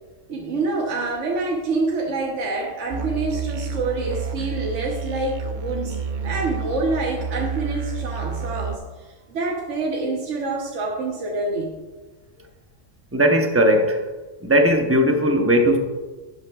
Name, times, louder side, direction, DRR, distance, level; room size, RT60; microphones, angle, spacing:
voice 1, 0.3-6.0 6.2-11.8, right 3 dB, 75° right, -2 dB, 1.3 m, -27 dB
Musical instrument, 2.9-8.8, right 5 dB, 50° right, 0.6 m, -29 dB
voice 2, 13.1-14.0 14.4-15.8, equal, 15° right, 3 dB, 0.7 m, -17 dB
11.5 x 8.0 x 2.4 m, 1.2 s
omnidirectional pair, 1.2 m